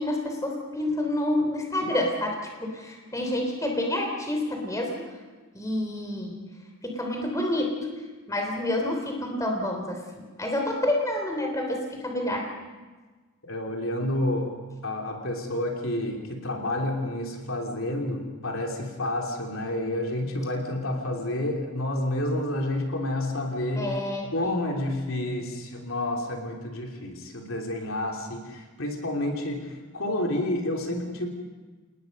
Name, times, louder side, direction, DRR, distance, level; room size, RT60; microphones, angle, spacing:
voice 1, 0.0-5.1 5.5-6.3 6.8-7.8 8.3-10.0 10.4-12.5 23.8-24.6, left 1 dB, 15° left, 2 dB, 3.5 m, -28 dB
voice 2, 13.4-14.5 14.8-24.0 24.3-31.3, left 1 dB, 65° left, 1 dB, 3.2 m, -29 dB
29.5 x 19.0 x 5.5 m, 1.3 s
head